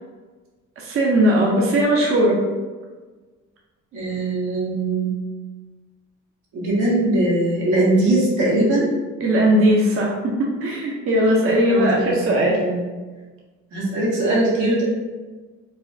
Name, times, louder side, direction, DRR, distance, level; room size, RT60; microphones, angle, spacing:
voice 1, 0.8-2.4 9.2-10.1 10.6-12.6, right 1 dB, 45° right, -3 dB, 0.7 m, -18 dB
voice 2, 3.9-5.1 6.5-8.9 11.7-12.3 12.5-12.8 13.7-14.9, right 2 dB, 85° right, -6 dB, 1.2 m, -21 dB
4.0 x 2.2 x 2.7 m, 1.3 s
cardioid pair, 90°, 30 cm